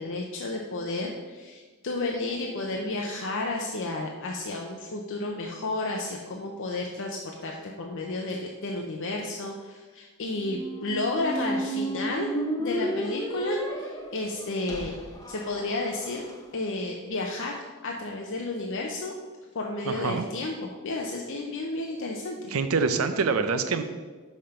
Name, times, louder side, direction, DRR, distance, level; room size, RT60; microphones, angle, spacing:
voice 1, 0.0-12.3 12.6-14.9 15.3-16.2 16.5-19.1 19.5-22.5, left 2 dB, 60° left, 0 dB, 0.7 m, -32 dB
Squeak, 10.4-16.3, right 1 dB, 15° left, 0.7 m, -33 dB
voice 2, 19.9-20.2 22.5-23.8, right 4 dB, 75° right, 9 dB, 0.6 m, -25 dB
5.7 x 5.0 x 5.7 m, 1.3 s
head